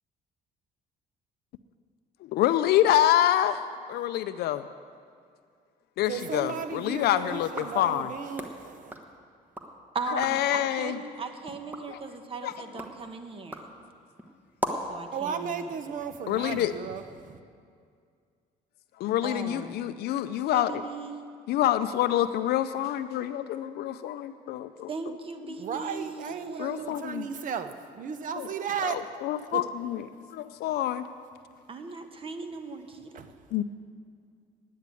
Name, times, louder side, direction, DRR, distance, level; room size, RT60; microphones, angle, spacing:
voice 1, 2.3-4.6 6.0-8.1 10.1-11.0 11.9-12.0 12.4-12.5 16.3-16.7 19.0-20.8 21.5-24.9 26.6-27.3 28.4-28.5 29.2-30.1 30.3-31.1 33.5-33.6, left 12 dB, 70° left, 11 dB, 0.4 m, -26 dB
voice 2, 6.0-9.0 15.1-17.4 25.6-29.0 29.5-29.6 33.1-33.3 33.6-33.7, right 7 dB, 50° right, 9 dB, 0.9 m, -35 dB
sound 1, 7.4-9.7 10.1-10.5 11.0-15.0, equal, 10° right, 1.2 m, -40 dB
voice 3, 9.9-13.7 14.9-15.7 19.2-19.8 20.5-21.2 24.9-27.0 31.7-33.4, right 4 dB, 35° right, 7 dB, 1.1 m, -38 dB
10.0 x 9.3 x 8.3 m, 2.2 s
cardioid pair, 110°, 17 cm